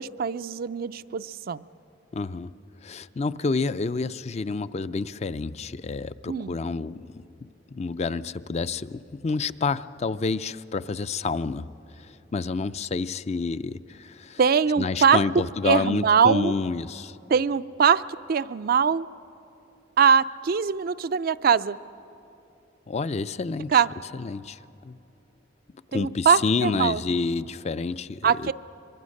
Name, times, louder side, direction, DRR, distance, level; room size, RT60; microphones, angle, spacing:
voice 1, 0.0-1.6 6.3-6.6 14.4-15.2 15.6-16.5 17.3-19.1 20.0-21.8 23.7-23.9 25.9-27.0 28.2-28.5, right 6 dB, 50° right, 15 dB, 0.4 m, -22 dB
voice 2, 2.1-2.5 2.8-11.7 12.0-14.4 14.8-17.2 22.9-23.8 24.1-24.6 24.8-25.0 25.9-28.5, left 4 dB, 35° left, 14 dB, 0.4 m, -29 dB
24.5 x 22.0 x 6.5 m, 3.0 s
head